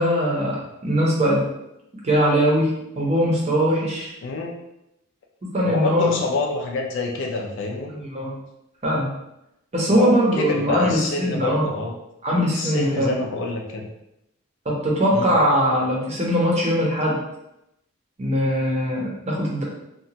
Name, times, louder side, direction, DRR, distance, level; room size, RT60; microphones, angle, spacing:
voice 1, 0.0-1.5 2.0-2.7 3.0-4.1 5.5-6.2 7.9-8.3 8.8-9.1 9.7-11.7 12.2-13.1 14.7-17.2 18.2-19.6, equal, 30° right, -3 dB, 0.6 m, -21 dB
voice 2, 4.2-4.5 5.6-7.9 9.9-11.9 12.5-13.9 15.1-15.3, left 3 dB, 60° left, 1 dB, 0.4 m, -27 dB
2.8 x 2.2 x 2.8 m, 0.85 s
head